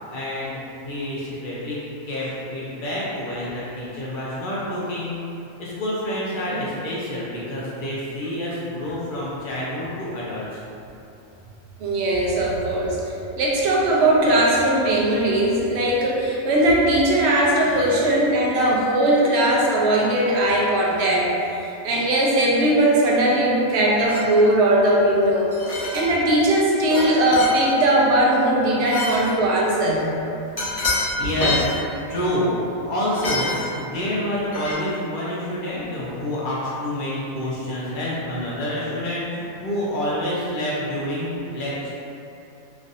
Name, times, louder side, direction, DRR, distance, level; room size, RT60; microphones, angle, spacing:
voice 1, 0.1-0.6 0.8-1.8 2.1-5.2 5.6-10.6 17.6-17.8 30.9-31.8 32.1-32.5 32.8-41.9, left 1 dB, 65° left, -7 dB, 0.5 m, -28 dB
voice 2, 11.8-13.0 13.4-30.1, right 1 dB, 60° right, -4 dB, 0.7 m, -19 dB
sound 1, 24.1-24.4 25.5-26.1 26.9-27.0 27.3-27.6 28.8-29.3 30.6-31.1 31.3-31.7 33.0-33.7 34.5-34.7, left 2 dB, 20° left, 0.6 m, -27 dB
3.1 x 2.6 x 2.5 m, 2.8 s
omnidirectional pair, 1.4 m